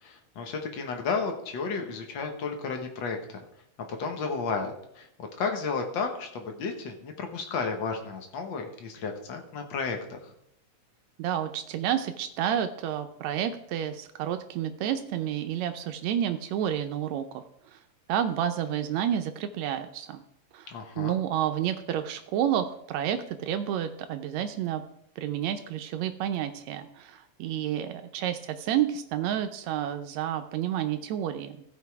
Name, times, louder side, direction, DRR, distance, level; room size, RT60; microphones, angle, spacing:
voice 1, 0.0-3.4 3.9-10.3 20.7-21.2, left 4 dB, 75° left, 4 dB, 1.0 m, -33 dB
voice 2, 11.2-17.4 17.7-17.8 18.1-20.2 20.5-24.8 25.2-31.6, right 10 dB, 85° right, 8 dB, 1.5 m, -30 dB
15.5 x 5.4 x 4.6 m, 0.74 s
omnidirectional pair, 3.9 m